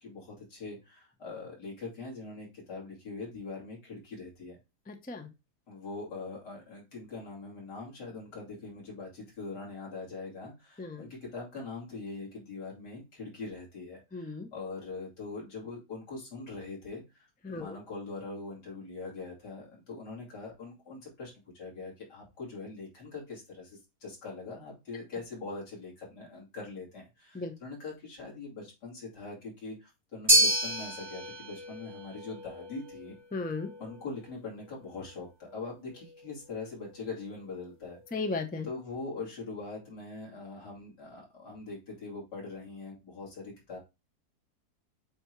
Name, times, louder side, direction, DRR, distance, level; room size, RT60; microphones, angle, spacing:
voice 1, 0.0-4.6 5.7-33.2 33.8-38.2 38.6-43.8, left 3 dB, 85° left, -3 dB, 3.3 m, -42 dB
voice 2, 4.9-5.3 10.8-11.0 14.1-14.5 17.4-17.8 27.3-27.5 33.3-33.7 38.1-38.7, left 3 dB, 10° left, 6 dB, 0.4 m, -35 dB
sound 1, 30.3-38.7, right 1 dB, 15° right, 1.7 m, -32 dB
7.6 x 2.9 x 4.5 m, 0.25 s
omnidirectional pair, 1.7 m